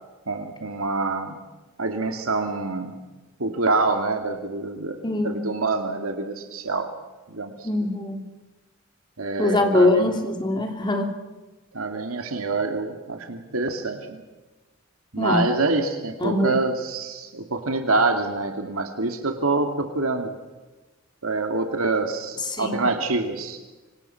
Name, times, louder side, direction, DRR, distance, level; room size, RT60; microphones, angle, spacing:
voice 1, 0.3-1.4 1.8-2.9 3.4-6.9 7.3-7.7 9.2-10.1 11.7-14.2 15.1-20.3 21.2-23.6, right 3 dB, 80° right, 5 dB, 2.5 m, -26 dB
voice 2, 5.0-5.5 7.6-8.3 9.4-11.2 15.2-15.4 16.2-16.5 22.6-22.7, left 1 dB, 20° left, 4 dB, 3.2 m, -22 dB
26.5 x 25.0 x 5.9 m, 1.2 s
head